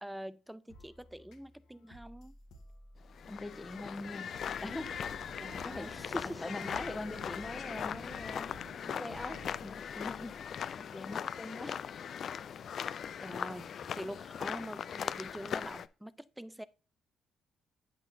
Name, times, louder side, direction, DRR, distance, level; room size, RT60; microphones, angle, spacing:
voice 1, 0.0-2.3 5.4-6.5 13.2-16.6, right 1 dB, 5° right, 0.4 m, -44 dB
sound 1, 0.7-12.9, equal, 80° left, 1.2 m, -57 dB
sound 2, 3.1-15.9, left 8 dB, 60° left, 0.3 m, -40 dB
voice 2, 3.3-4.3 4.6-5.0 5.6-5.9 6.4-8.5 8.8-10.4 10.8-11.8, left 2 dB, 20° left, 1.0 m, -42 dB
sound 3, 4.6-9.6, right 1 dB, 80° right, 1.7 m, -52 dB
8.4 x 6.2 x 2.7 m
supercardioid pair, 65°, 0 cm